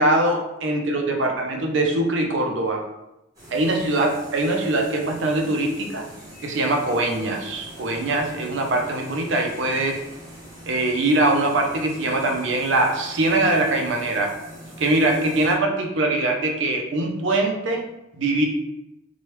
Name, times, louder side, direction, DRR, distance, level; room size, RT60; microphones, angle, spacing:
voice 1, 0.0-2.9 3.5-6.1 6.4-10.0 10.7-14.4 14.8-17.9 18.2-18.5, right 2 dB, 75° right, 2 dB, 0.5 m, -22 dB
sound 1, 3.3-15.5, right 1 dB, 20° right, 1.1 m, -43 dB
3.0 x 2.3 x 3.0 m, 0.90 s
head